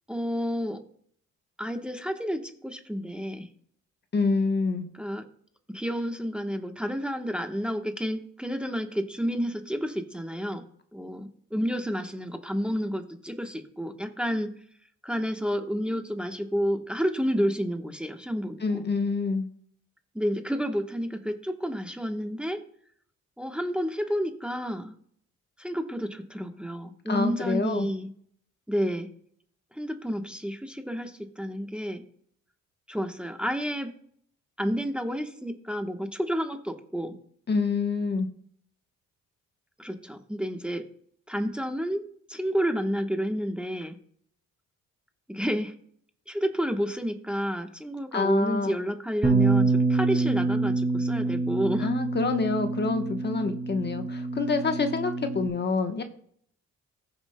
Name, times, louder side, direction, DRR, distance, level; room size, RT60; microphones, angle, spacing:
voice 1, 0.1-0.8 1.6-3.5 4.9-5.3 5.7-10.6 10.9-14.5 15.0-18.8 20.1-22.6 23.4-24.9 25.6-28.1 28.7-29.1 29.7-32.0 32.9-33.9 34.6-37.1 39.8-40.8 41.3-44.0 45.3-45.7 46.3-51.9, equal, 5° right, 5 dB, 1.1 m, -30 dB
voice 2, 4.1-4.9 18.6-19.5 27.1-27.9 37.5-38.3 48.1-48.8 51.8-56.0, left 4 dB, 35° left, 6 dB, 1.1 m, -27 dB
Bass guitar, 49.2-55.5, right 3 dB, 20° right, 2.5 m, -26 dB
15.0 x 7.2 x 2.2 m, 0.62 s
cardioid pair, 90°, 30 cm